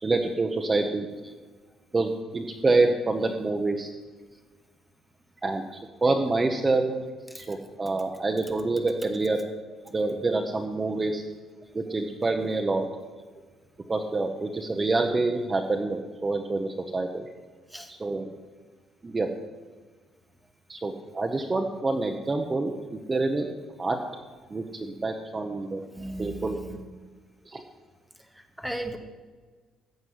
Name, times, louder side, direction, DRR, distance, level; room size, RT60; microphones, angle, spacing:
voice 1, 0.0-1.1 1.9-3.9 5.4-5.6 6.0-6.9 7.3-9.4 9.9-11.2 11.7-12.8 13.9-17.2 17.9-18.3 19.0-19.3 20.7-23.5 23.8-24.0 24.5-25.8 26.2-26.6 27.5-27.6, right 3 dB, 15° right, 3 dB, 0.8 m, -27 dB
voice 2, 25.9-26.8 28.6-29.0, right 1 dB, ahead, 6 dB, 1.1 m, -35 dB
14.5 x 5.3 x 9.6 m, 1.4 s
cardioid pair, 165°, 0 cm